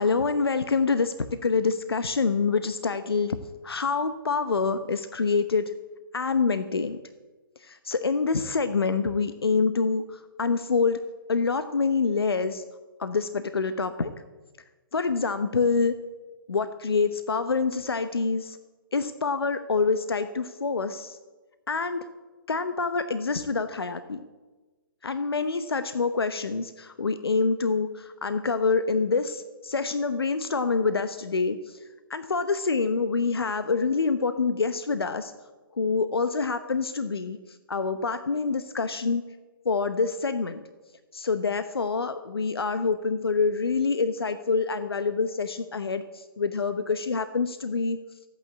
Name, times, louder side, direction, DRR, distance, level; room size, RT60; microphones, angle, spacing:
voice 1, 0.0-3.4 3.6-5.7 6.1-7.0 7.6-11.0 11.3-12.6 13.0-14.1 14.9-15.9 16.5-18.6 18.9-21.2 21.7-22.1 22.5-24.2 25.0-35.3 35.7-39.2 39.6-40.6 41.1-48.2, left 4 dB, 85° left, 10 dB, 0.9 m, -26 dB
13.5 x 9.0 x 8.6 m, 1.2 s
hypercardioid pair, 135°, 12 cm